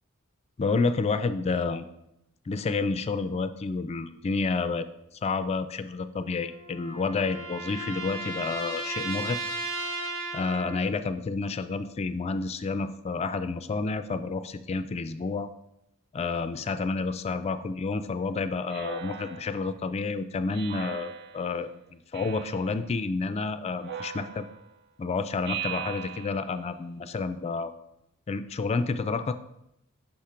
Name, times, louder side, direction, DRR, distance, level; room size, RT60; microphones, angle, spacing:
voice 1, 0.6-1.9 2.5-4.9 5.2-9.4 10.3-15.5 16.1-24.5 25.0-27.7 28.3-29.3, left 4 dB, 30° left, 11 dB, 0.3 m, -30 dB
sound 1, 6.2-11.0, right 2 dB, 70° right, 1.0 m, -35 dB
Speech synthesizer, 18.7-19.8 20.5-21.5 22.1-22.8 23.8-24.7 25.4-26.6, right 8 dB, 50° right, 0.5 m, -39 dB
5.9 x 4.3 x 5.0 m, 0.82 s
head